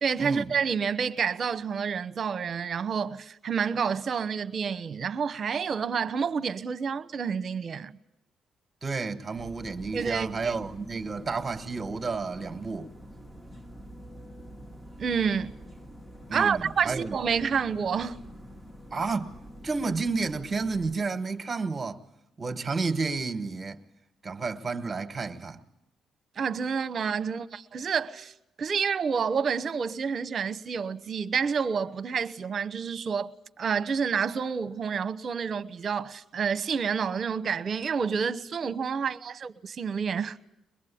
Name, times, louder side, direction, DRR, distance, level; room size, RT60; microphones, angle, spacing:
voice 1, 0.0-8.0 9.9-10.6 15.0-15.5 16.3-18.2 26.4-28.3 28.6-40.4, right 6 dB, 50° right, 0.9 m, -29 dB
voice 2, 8.8-12.9 16.3-17.2 18.9-22.0 22.4-23.8 24.2-25.6, right 4 dB, 25° right, 1.6 m, -31 dB
sound 1, 9.3-21.0, equal, 5° left, 1.3 m, -46 dB
22.5 x 21.5 x 8.6 m
cardioid pair, 90°, 0 cm